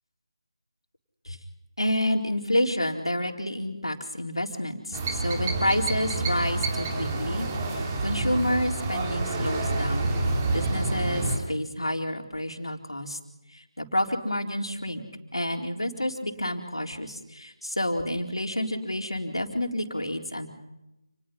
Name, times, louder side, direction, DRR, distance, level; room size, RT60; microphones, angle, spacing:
voice 1, 1.8-7.5 8.0-10.2 10.5-13.2 13.5-15.0 15.3-20.5, left 1 dB, 75° left, 3 dB, 4.1 m, -29 dB
sound 1, 4.9-11.4, right 2 dB, 20° right, 2.8 m, -28 dB
29.0 x 20.5 x 5.7 m, 0.91 s
figure-of-eight pair, 160°, 3 cm